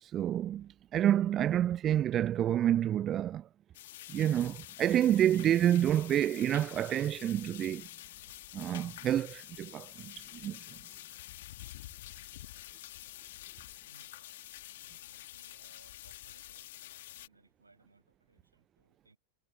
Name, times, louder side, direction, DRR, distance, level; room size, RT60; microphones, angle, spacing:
voice 1, 0.0-3.5 4.1-7.9 8.5-10.6, right 11 dB, 30° right, 0.3 m, -28 dB
sound 1, 3.7-17.3, left 15 dB, 55° left, 2.0 m, -48 dB
voice 2, 13.7-19.2, right 3 dB, 80° right, 6.3 m, -65 dB
figure-of-eight pair, 90°, 0 cm